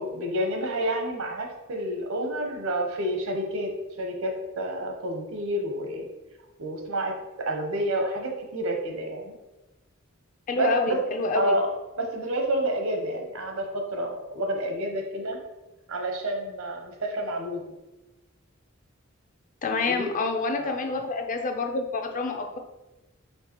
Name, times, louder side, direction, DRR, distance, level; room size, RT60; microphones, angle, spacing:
voice 1, 0.0-3.7 4.0-6.1 6.6-7.1 7.4-9.3 10.6-11.0 11.3-11.7 12.0-15.4 15.9-17.6 19.9-20.1 20.6-20.8, right 1 dB, 85° right, 2 dB, 0.8 m, -29 dB
voice 2, 10.5-11.6 19.6-22.6, left 3 dB, 40° left, 4 dB, 0.5 m, -27 dB
4.4 x 3.2 x 3.0 m, 1.0 s
head